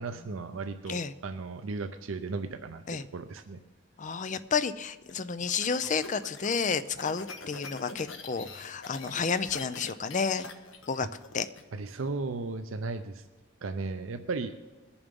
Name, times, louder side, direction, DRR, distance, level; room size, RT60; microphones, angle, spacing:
voice 1, 0.0-3.6 11.7-13.2 13.6-14.8, right 3 dB, 80° right, 8 dB, 0.6 m, -36 dB
voice 2, 4.0-10.5 10.9-11.1 11.3-11.5, left 5 dB, 35° left, 13 dB, 0.5 m, -31 dB
sound 1, 5.1-11.6, left 4 dB, 75° left, 1.3 m, -44 dB
20.5 x 7.1 x 5.3 m, 1.2 s
head